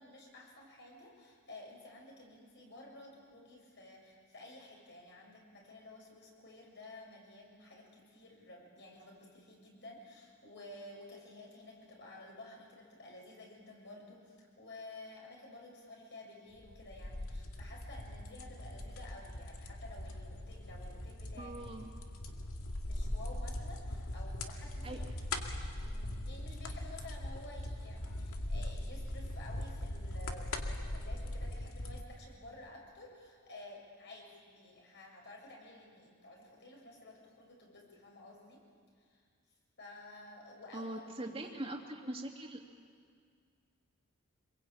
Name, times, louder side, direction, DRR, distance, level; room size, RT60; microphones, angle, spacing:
voice 1, 0.0-21.7 22.8-25.1 25.8-38.6 39.0-39.2 39.8-41.3, left 2 dB, 55° left, 0 dB, 7.0 m, -52 dB
sound 1, 16.6-32.0, left 1 dB, 90° left, 2.1 m, -41 dB
voice 2, 21.4-21.9 24.8-25.0 40.7-42.6, right 1 dB, 25° right, 1 dB, 2.8 m, -42 dB
26.5 x 22.5 x 8.9 m, 2.1 s
head